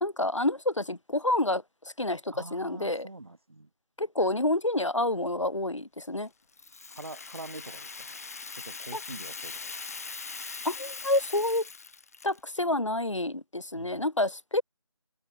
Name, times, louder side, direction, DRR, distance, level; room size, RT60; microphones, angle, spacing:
voice 1, 0.0-3.1 4.0-6.3 8.9-9.0 10.7-11.7 12.2-14.6, left 1 dB, 75° left, 1.7 m, -28 dB
voice 2, 2.3-3.7 7.0-8.2 8.6-9.7 13.7-14.0, right 2 dB, 55° right, 3.1 m, -45 dB
Rattle (instrument), 6.5-12.5, left 4 dB, 30° left, 5.2 m, -41 dB
figure-of-eight pair, 165°, 16 cm